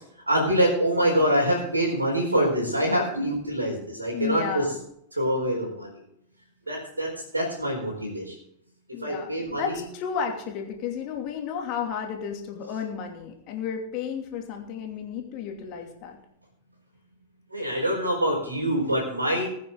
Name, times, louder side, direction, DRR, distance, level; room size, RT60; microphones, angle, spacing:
voice 1, 0.3-4.7 5.1-6.0 6.7-8.3 9.0-9.8 17.5-19.5, equal, 80° right, -5 dB, 4.6 m, -25 dB
voice 2, 4.1-4.8 8.9-16.2, left 7 dB, 40° left, 2 dB, 2.8 m, -32 dB
20.5 x 9.5 x 4.0 m, 0.72 s
figure-of-eight pair, 90°, 0 cm